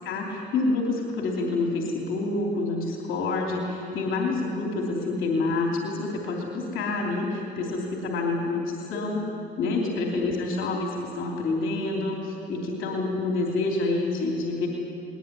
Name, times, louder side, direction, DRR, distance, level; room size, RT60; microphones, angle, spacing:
voice 1, 0.0-9.3 9.6-14.7, left 3 dB, 85° left, -1 dB, 3.0 m, -27 dB
20.5 x 19.5 x 9.7 m, 2.8 s
cardioid pair, 90°, 20 cm